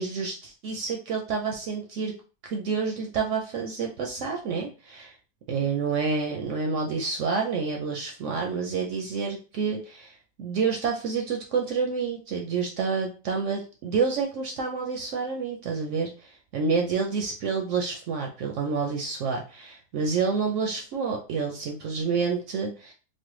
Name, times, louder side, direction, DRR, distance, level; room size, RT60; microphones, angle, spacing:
voice 1, 0.0-2.1 2.4-5.1 5.5-10.1 10.4-22.9, right 5 dB, 65° right, 1 dB, 0.8 m, -28 dB
3.1 x 2.1 x 3.0 m, 0.34 s
omnidirectional pair, 1.6 m